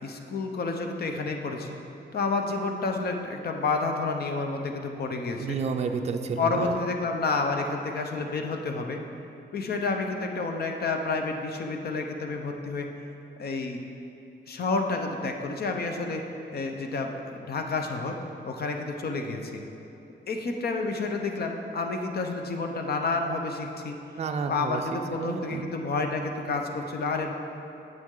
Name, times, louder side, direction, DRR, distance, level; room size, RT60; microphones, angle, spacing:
voice 1, 0.0-1.8 2.1-5.6 6.4-9.0 9.5-12.9 13.4-13.8 14.5-16.2 16.5-18.2 18.4-19.6 20.3-24.0 24.5-27.3, left 3 dB, 55° left, 4 dB, 0.7 m, -30 dB
voice 2, 5.4-6.8 24.2-24.8 25.1-25.7, right 5 dB, 35° right, 4 dB, 0.4 m, -30 dB
9.2 x 7.5 x 3.8 m, 2.8 s
wide cardioid pair, 175°, 19 cm